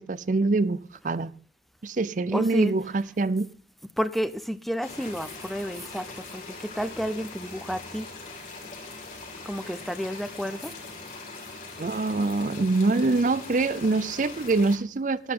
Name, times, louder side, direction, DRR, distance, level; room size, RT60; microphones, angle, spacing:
voice 1, 0.0-1.3 1.8-3.5 11.8-15.3, right 3 dB, 45° right, 0.5 m, -25 dB
voice 2, 2.3-3.1 4.0-8.1 9.4-10.7, equal, ahead, 0.6 m, -31 dB
sound 1, 4.8-14.8, left 3 dB, 50° left, 5.4 m, -41 dB
13.0 x 12.5 x 3.8 m
head